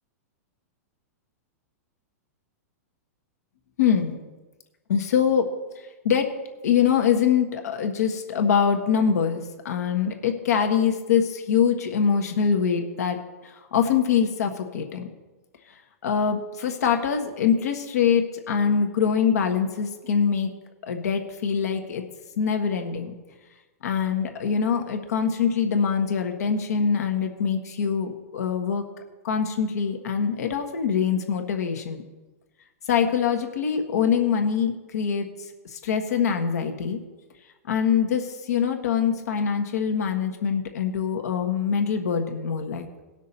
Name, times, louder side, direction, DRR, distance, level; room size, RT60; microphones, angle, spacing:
voice 1, 3.8-4.2 4.9-5.4 6.0-6.3 6.6-13.2 13.4-15.1 16.0-20.5 20.8-22.0 22.4-23.1 23.8-28.9 29.2-32.0 32.9-35.3 35.6-37.0 37.7-42.9, left 7 dB, 75° left, 5 dB, 1.5 m, -24 dB
18.0 x 6.2 x 4.2 m, 1.2 s
hypercardioid pair, 120°, 9 cm